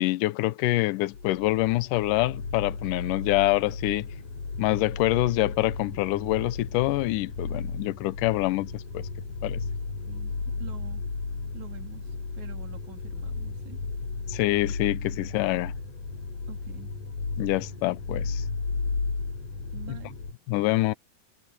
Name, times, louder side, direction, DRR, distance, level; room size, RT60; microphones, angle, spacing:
voice 1, 0.0-4.1 4.6-9.1 9.4-9.6 14.3-15.7 17.4-18.4 20.5-20.9, left 18 dB, 80° left, 2.3 m, -26 dB
sound 1, 1.1-20.3, left 4 dB, 65° left, 7.1 m, -34 dB
voice 2, 10.0-11.0 11.5-13.8 16.5-16.9 19.7-20.2, right 12 dB, 60° right, 4.4 m, -46 dB
omnidirectional pair, 3.8 m